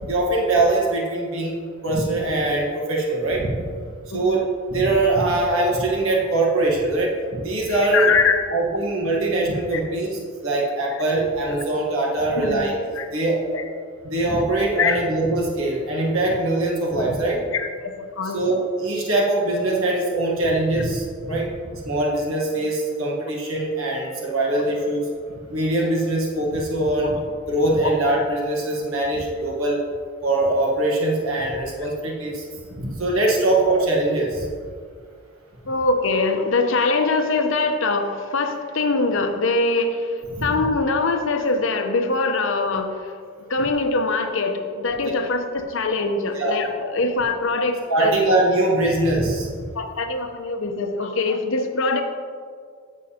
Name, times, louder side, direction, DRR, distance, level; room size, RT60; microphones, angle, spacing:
voice 1, 0.0-1.6 1.8-3.6 4.1-4.4 4.7-7.1 7.4-8.1 8.5-12.8 13.1-13.4 14.0-17.4 18.3-21.5 21.8-25.1 25.5-27.2 27.5-29.8 30.2-32.4 32.7-34.5 40.4-40.5 45.0-45.1 46.3-46.6 47.9-49.5, right 2 dB, 75° right, -2 dB, 1.3 m, -22 dB
voice 2, 7.7-8.5 9.7-9.8 10.9-11.0 12.3-12.7 12.9-13.1 13.5-13.7 14.5-15.0 16.3-16.4 17.2-18.5 27.0-27.1 27.8-27.9 35.7-43.1 43.4-48.2 49.7-52.0, left 3 dB, 65° left, 6 dB, 0.7 m, -23 dB
12.0 x 7.2 x 2.8 m, 2.1 s
head